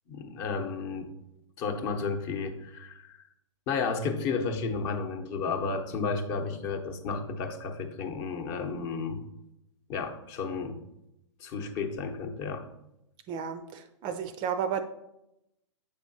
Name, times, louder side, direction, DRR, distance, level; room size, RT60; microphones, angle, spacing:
voice 1, 0.1-1.1 1.6-3.2 3.7-9.2 9.9-10.8 11.4-12.6, left 4 dB, 40° left, 6 dB, 0.8 m, -32 dB
voice 2, 13.3-14.8, right 7 dB, 30° right, 10 dB, 0.4 m, -32 dB
7.7 x 5.0 x 2.7 m, 0.86 s
hypercardioid pair, 115°, 16 cm